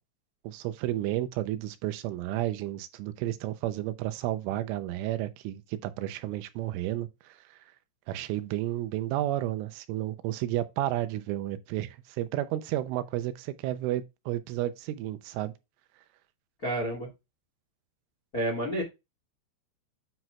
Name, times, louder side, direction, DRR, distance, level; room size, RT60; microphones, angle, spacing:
voice 1, 0.4-7.4 8.1-15.5, right 14 dB, 85° right, 3.3 m, -32 dB
voice 2, 16.6-17.1 18.3-18.8, right 1 dB, 40° left, 1.2 m, -29 dB
9.4 x 6.0 x 2.4 m
omnidirectional pair, 5.5 m